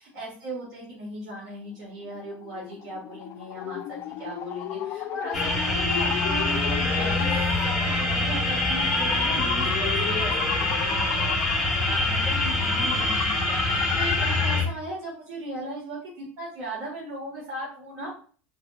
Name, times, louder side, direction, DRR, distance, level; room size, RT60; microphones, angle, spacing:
voice 1, 0.0-7.3 7.6-18.1, right 1 dB, 55° right, -4 dB, 1.4 m, -37 dB
sound 1, 2.0-14.7, left 9 dB, 40° left, 0.4 m, -34 dB
sound 2, 5.3-14.6, left 2 dB, 10° right, 1.5 m, -25 dB
3.3 x 2.9 x 2.3 m, 0.42 s
supercardioid pair, 125°, 7 cm